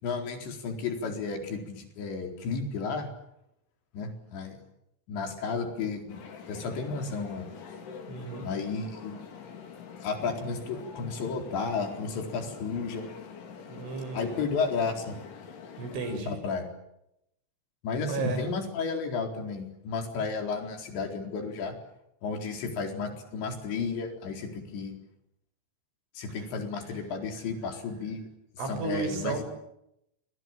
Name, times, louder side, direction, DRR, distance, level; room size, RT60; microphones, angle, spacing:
voice 1, 0.0-3.1 3.9-4.6 5.1-6.2 6.5-7.4 8.4-9.2 10.0-13.1 14.1-15.2 16.3-16.6 17.8-21.7 22.2-25.0 26.1-28.3 28.7-29.3, left 4 dB, 70° left, 4 dB, 6.5 m, -33 dB
sound 1, 6.1-16.2, left 6 dB, 85° left, 6.3 m, -45 dB
voice 2, 8.1-8.5 13.7-14.4 15.8-16.4 18.1-18.5 26.3-26.5 28.6-29.4, right 4 dB, 85° right, 8 dB, 8.6 m, -34 dB
29.0 x 26.0 x 7.5 m, 0.82 s
omnidirectional pair, 5.3 m